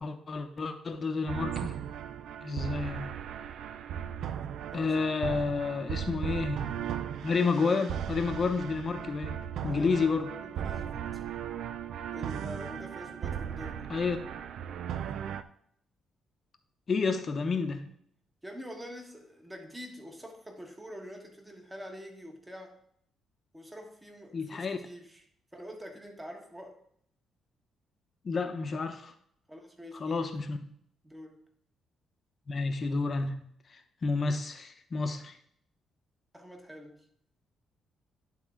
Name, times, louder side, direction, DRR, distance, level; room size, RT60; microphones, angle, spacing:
voice 1, 0.0-1.8 2.4-3.1 4.7-6.7 7.2-9.4 9.6-10.3 13.9-14.2 16.9-17.8 24.3-24.8 28.2-29.1 30.0-30.6 32.5-33.4 33.7-35.4, left 4 dB, 40° left, 7 dB, 0.9 m, -30 dB
sound 1, 1.3-15.4, right 9 dB, 75° right, 0.4 m, -37 dB
voice 2, 4.6-5.1 9.7-10.1 10.4-11.2 12.1-13.9 18.4-22.8 23.5-25.2 25.5-26.8 29.5-30.3 31.0-31.4 36.3-37.1, equal, 10° right, 3 dB, 1.4 m, -45 dB
11.0 x 3.7 x 3.7 m, 0.67 s
cardioid pair, 90°, 0 cm